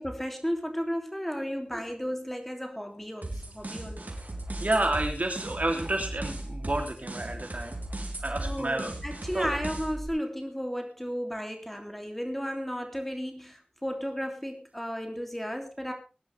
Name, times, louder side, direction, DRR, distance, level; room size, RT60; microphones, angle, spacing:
voice 1, 0.0-4.1 8.4-15.9, equal, 5° left, 4 dB, 3.1 m, -34 dB
sound 1, 3.2-10.1, right 1 dB, 80° right, 3.7 m, -37 dB
voice 2, 4.6-7.8 8.2-8.9 9.3-9.5, right 2 dB, 60° right, 3 dB, 3.3 m, -30 dB
20.5 x 11.0 x 3.5 m, 0.32 s
wide cardioid pair, 50°, 3 cm